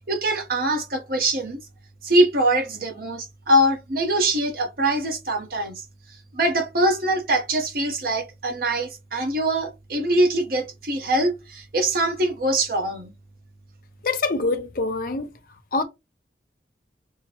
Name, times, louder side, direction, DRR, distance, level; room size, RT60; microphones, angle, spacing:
voice 1, 0.1-1.6 2.0-5.8 6.3-13.1, right 1 dB, 55° right, 0.9 m, -23 dB
voice 2, 14.0-15.3 15.7-15.8, left 3 dB, 50° left, 0.6 m, -24 dB
5.7 x 2.1 x 2.9 m
head